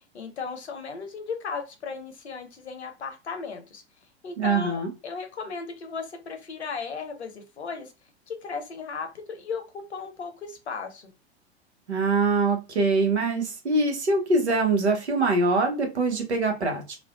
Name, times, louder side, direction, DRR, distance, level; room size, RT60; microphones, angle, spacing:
voice 1, 0.1-3.8 4.2-7.9 8.3-9.6 9.9-11.1, left 5 dB, 80° left, 0.7 m, -36 dB
voice 2, 4.4-4.9 11.9-17.0, right 3 dB, 85° right, 0.9 m, -23 dB
2.5 x 2.2 x 2.2 m
figure-of-eight pair, 90°, 32 cm